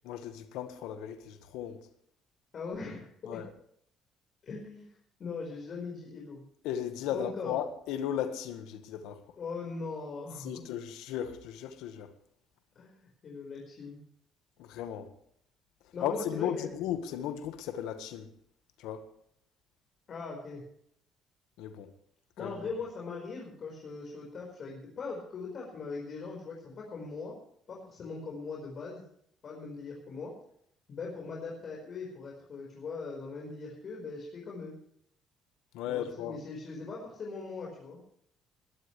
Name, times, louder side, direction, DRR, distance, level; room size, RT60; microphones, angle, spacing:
voice 1, 0.0-1.9 3.2-3.5 6.6-9.2 10.4-12.1 14.6-15.1 16.0-18.3 18.8-19.1 21.6-21.9 22.4-22.5 35.7-36.4, left 10 dB, 90° left, 1.6 m, -36 dB
voice 2, 2.5-3.4 4.4-6.4 7.1-7.5 9.4-10.6 12.7-14.0 15.9-16.7 20.1-20.6 22.4-27.3 27.7-29.0 29.4-30.3 30.9-34.7 35.9-38.0, left 4 dB, 50° left, 5.0 m, -40 dB
21.0 x 12.5 x 3.3 m
cardioid pair, 105°, 0 cm